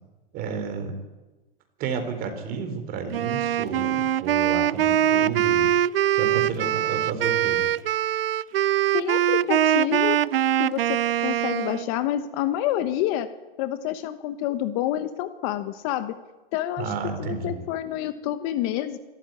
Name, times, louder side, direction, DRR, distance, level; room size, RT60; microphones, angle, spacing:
voice 1, 0.3-0.9 1.8-5.7 6.1-7.7 16.8-17.7, right 5 dB, 30° right, 6 dB, 4.1 m, -31 dB
Wind instrument woodwind instrument, 3.1-11.9, right 11 dB, 75° right, 0.7 m, -23 dB
voice 2, 8.9-10.2 10.6-13.3 13.6-16.1 16.5-16.9 17.2-19.0, left 12 dB, 40° left, 11 dB, 1.2 m, -28 dB
24.0 x 13.5 x 9.8 m, 1.1 s
hypercardioid pair, 135°, 29 cm